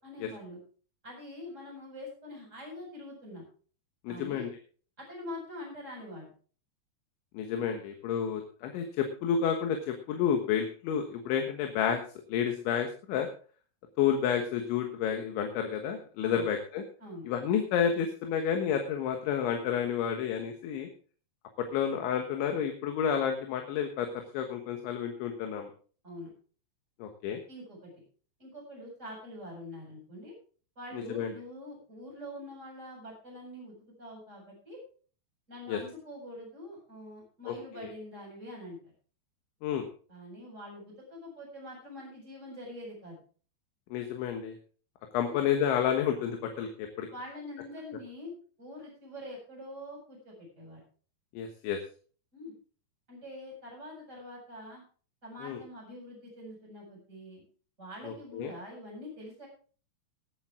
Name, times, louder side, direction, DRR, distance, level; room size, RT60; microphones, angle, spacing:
voice 1, 0.0-0.6 1.0-3.5 4.1-4.5 5.0-6.3 16.2-16.5 17.0-17.3 26.0-26.3 27.5-28.0 28.4-30.3 30.8-34.8 35.5-38.9 40.1-43.2 45.3-45.4 47.1-48.3 48.6-50.8 52.3-52.5 53.1-54.8 55.2-57.4 57.8-59.5, left 1 dB, 15° right, -2 dB, 7.9 m, -44 dB
voice 2, 4.1-4.5 7.3-12.0 12.3-13.3 14.0-16.8 17.3-20.9 21.6-25.7 27.0-27.4 30.9-31.3 35.7-35.8 37.5-37.9 39.6-39.9 43.9-44.6 45.1-47.1 51.3-51.8 55.4-55.6 58.0-58.5, left 8 dB, 90° left, 4 dB, 3.8 m, -30 dB
20.5 x 9.0 x 3.7 m, 0.40 s
omnidirectional pair, 5.2 m